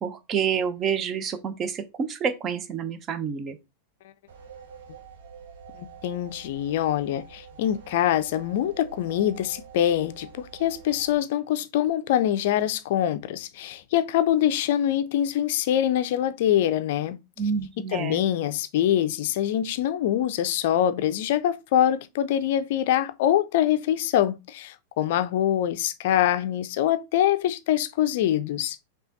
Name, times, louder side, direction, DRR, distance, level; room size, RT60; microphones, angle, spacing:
voice 1, 0.0-3.6 17.4-18.3, right 7 dB, 30° right, 0.7 m, -28 dB
sound 1, 4.3-11.1, right 6 dB, 60° right, 1.0 m, -46 dB
voice 2, 5.8-17.2 17.8-28.8, left 11 dB, 50° left, 0.4 m, -24 dB
5.6 x 2.4 x 3.8 m
figure-of-eight pair, 90°, 0 cm